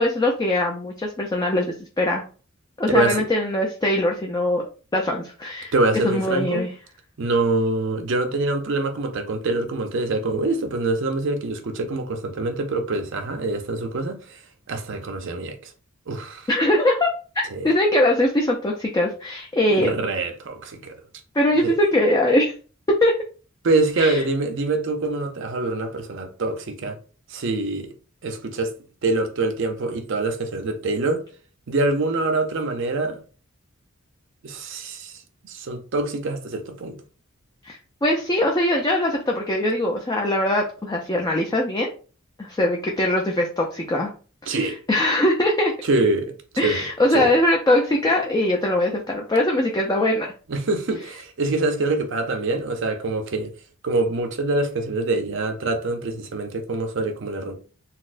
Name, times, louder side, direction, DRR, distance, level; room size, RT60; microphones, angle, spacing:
voice 1, 0.0-2.2 2.8-4.7 4.9-5.7 6.0-6.7 16.5-17.1 17.4-19.9 21.3-22.5 22.9-23.1 24.0-24.2 37.6-41.9 42.4-44.1 44.5-44.6 44.9-45.7 46.6-50.3, left 1 dB, 20° left, 0.4 m, -21 dB
voice 2, 2.9-3.3 5.7-6.7 7.2-14.4 14.7-15.7 16.1-16.5 17.5-17.7 19.7-21.0 21.6-21.8 23.6-27.0 27.3-27.9 28.2-28.7 29.0-31.3 31.7-33.2 34.4-37.0 44.5-44.8 45.8-46.3 46.6-47.3 50.5-53.5 53.8-57.5, right 2 dB, 60° right, 0.5 m, -25 dB
4.0 x 2.0 x 2.5 m
head